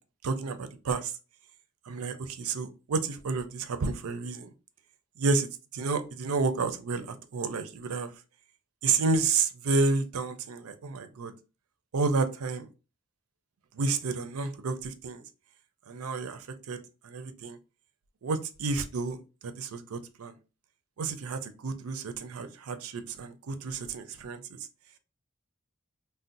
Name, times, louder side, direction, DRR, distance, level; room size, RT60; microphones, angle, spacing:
voice 1, 0.2-1.1 1.9-4.5 5.2-5.5 5.7-8.1 8.8-11.3 11.9-12.7 13.7-15.2 15.9-17.6 18.2-20.4 21.0-24.4, right 4 dB, 85° right, 9 dB, 0.5 m, -30 dB
2.5 x 2.1 x 3.8 m, 0.32 s
head